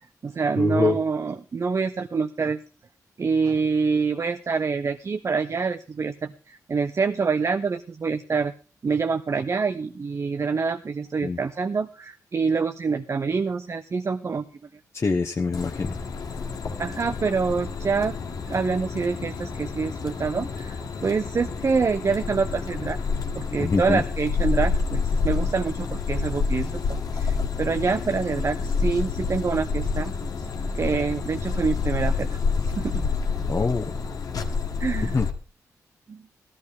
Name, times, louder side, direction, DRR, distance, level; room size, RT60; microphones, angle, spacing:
voice 1, 0.0-2.6 3.2-8.5 8.8-14.5 16.8-18.2 18.5-23.0 23.3-30.1 30.7-32.4 32.8-33.1 34.8-35.1 36.1-36.2, right 5 dB, 45° right, 11 dB, 0.6 m, -26 dB
voice 2, 0.6-1.0 11.2-11.4 14.9-16.0 23.6-24.0 33.5-33.9 35.1-35.3, left 4 dB, 40° left, 3 dB, 1.0 m, -24 dB
sound 1, 15.5-35.3, left 5 dB, 65° left, 1.6 m, -28 dB
14.0 x 13.5 x 3.5 m, 0.35 s
cardioid pair, 55°, 7 cm